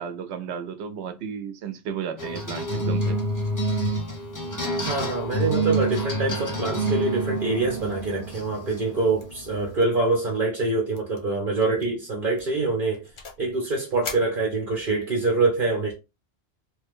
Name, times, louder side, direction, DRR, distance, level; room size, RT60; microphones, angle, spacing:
voice 1, 0.0-3.2, right 7 dB, 85° right, 0.9 m, -33 dB
sound 1, 2.2-9.8, right 1 dB, 20° left, 0.6 m, -28 dB
voice 2, 4.9-13.1 13.4-15.9, right 3 dB, 55° right, 1.1 m, -25 dB
sound 2, 9.2-9.5 9.8-10.1 10.3-10.4 10.9-11.2 11.6-11.9 12.4-13.5 14.0-15.0, left 5 dB, 85° left, 1.1 m, -41 dB
3.1 x 2.2 x 3.5 m
omnidirectional pair, 1.1 m